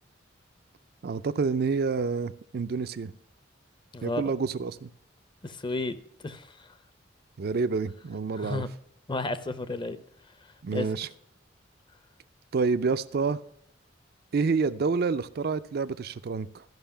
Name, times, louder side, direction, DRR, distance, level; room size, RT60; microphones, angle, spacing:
voice 1, 1.0-3.1 4.0-4.9 7.4-8.6 10.6-11.1 12.5-13.4 14.3-16.6, right 4 dB, 55° right, 13 dB, 0.4 m, -28 dB
voice 2, 5.4-6.0 6.2-6.7 8.3-8.7 9.1-10.0 10.7-10.9, left 2 dB, 25° left, 13 dB, 0.6 m, -32 dB
12.5 x 5.6 x 5.6 m, 0.71 s
head